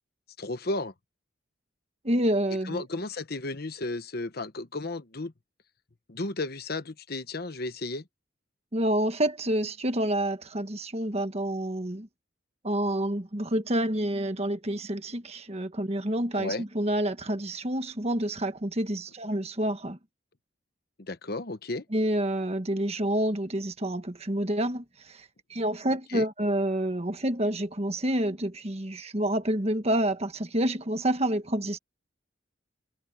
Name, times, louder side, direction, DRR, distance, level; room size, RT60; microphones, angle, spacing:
voice 1, 0.4-0.9 2.6-5.3 6.1-8.0 16.3-16.6 21.0-21.8 26.1-26.2, left 2 dB, 50° left, 1.1 m, -33 dB
voice 2, 2.0-2.8 8.7-12.1 12.6-20.0 21.9-25.2 25.5-31.8, right 1 dB, 30° right, 1.5 m, -28 dB
head